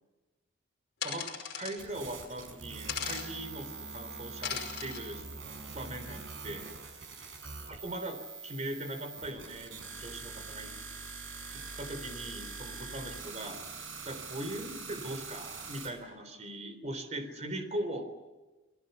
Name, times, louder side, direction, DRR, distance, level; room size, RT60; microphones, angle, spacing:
sound 1, 1.0-1.8 2.9-3.3 4.4-5.0, left 7 dB, 60° left, 5.5 m, -37 dB
voice 1, 1.5-5.2 5.7-6.7 7.7-10.7 11.5-18.1, right 1 dB, 35° right, 7 dB, 3.8 m, -40 dB
sound 2, 1.8-15.9, right 4 dB, 90° right, 5.8 m, -44 dB
28.5 x 21.0 x 7.0 m, 1.2 s
head